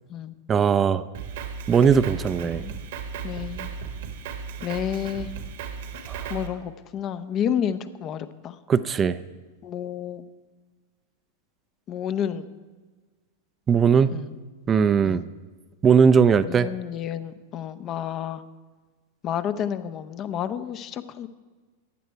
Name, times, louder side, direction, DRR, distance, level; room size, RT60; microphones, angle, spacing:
voice 1, 0.5-1.0 1.7-2.6 6.1-6.3 8.7-9.2 13.7-14.1 14.7-15.2 15.8-16.7, right 6 dB, 25° right, 14 dB, 0.5 m, -19 dB
Drum kit, 1.1-6.5, right 6 dB, 60° right, 1.4 m, -35 dB
voice 2, 3.2-3.7 4.6-5.3 6.3-8.6 9.6-10.2 11.9-12.5 14.1-14.3 15.0-15.2 16.5-18.4 19.2-21.3, left 9 dB, 35° left, 13 dB, 0.8 m, -30 dB
15.5 x 10.5 x 4.6 m, 1.4 s
figure-of-eight pair, 95°, 0 cm